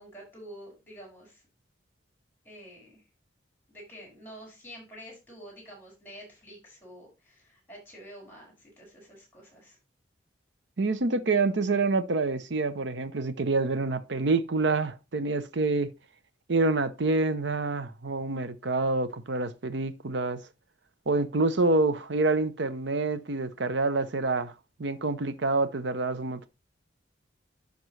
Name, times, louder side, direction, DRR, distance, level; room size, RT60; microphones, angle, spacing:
voice 1, 0.0-1.4 2.4-3.0 3.7-9.8, equal, 10° left, 5.8 m, -48 dB
voice 2, 10.8-15.9 16.5-20.4 21.1-24.5 24.8-26.5, right 3 dB, 65° right, 0.7 m, -27 dB
11.0 x 5.3 x 3.2 m
head